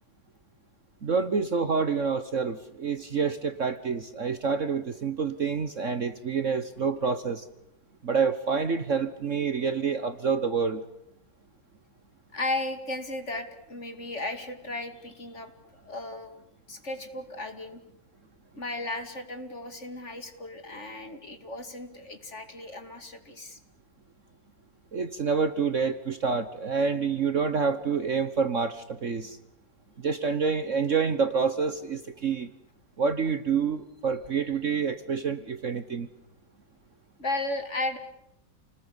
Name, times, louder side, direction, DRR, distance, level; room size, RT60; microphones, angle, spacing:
voice 1, 1.0-7.4 8.0-10.8 24.9-29.4 30.0-32.5 33.0-36.1, right 5 dB, 45° right, 11 dB, 1.4 m, -27 dB
voice 2, 12.3-16.3 16.7-17.8 18.5-23.6 37.2-38.0, left 2 dB, 40° left, 8 dB, 2.7 m, -35 dB
29.5 x 20.0 x 9.9 m, 0.81 s
omnidirectional pair, 2.0 m